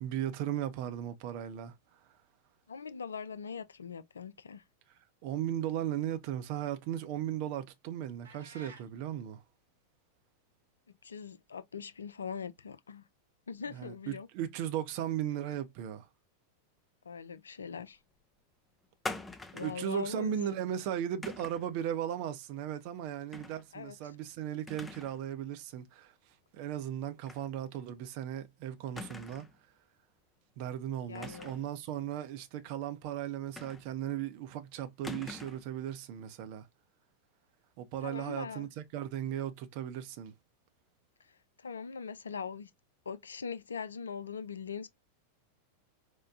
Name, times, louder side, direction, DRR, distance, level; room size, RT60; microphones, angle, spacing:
voice 1, 0.0-1.7 5.2-9.4 13.7-16.1 19.6-26.1 26.5-29.5 30.6-36.7 37.8-40.3, right 10 dB, 45° right, 0.6 m, -36 dB
voice 2, 2.7-4.6 11.0-13.0 13.5-14.3 17.0-18.0 19.5-20.3 23.7-24.2 31.1-31.5 38.0-38.7 41.6-42.7 43.1-44.9, left 6 dB, 70° left, 0.3 m, -41 dB
sound 1, 8.2-8.9, right 2 dB, 75° right, 0.9 m, -51 dB
sound 2, 19.0-19.9 21.2-21.7 23.3-23.6 24.0-24.1 24.7-25.2 25.5-25.6 27.3-27.5 27.8-27.9 29.0-29.6 31.1-31.7 33.6-34.1 35.0-35.7, left 2 dB, 10° left, 0.5 m, -43 dB
4.5 x 2.1 x 2.4 m
figure-of-eight pair, 90°, 0 cm